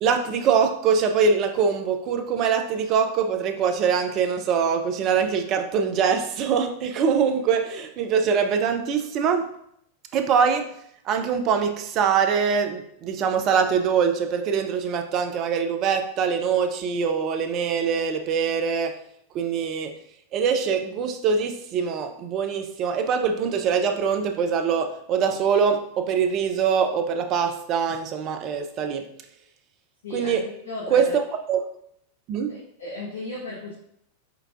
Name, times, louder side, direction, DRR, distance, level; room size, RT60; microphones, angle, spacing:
voice 1, 0.0-9.5 10.1-10.7 11.0-19.0 19.3-19.9 20.3-29.1 30.1-30.4 30.9-31.2 31.5-31.6 32.3-32.5, right 6 dB, 35° right, 6 dB, 0.5 m, -23 dB
voice 2, 30.0-31.1 32.5-33.7, left 2 dB, 70° left, -5 dB, 1.1 m, -35 dB
4.5 x 4.5 x 2.5 m, 0.72 s
figure-of-eight pair, 90°, 0 cm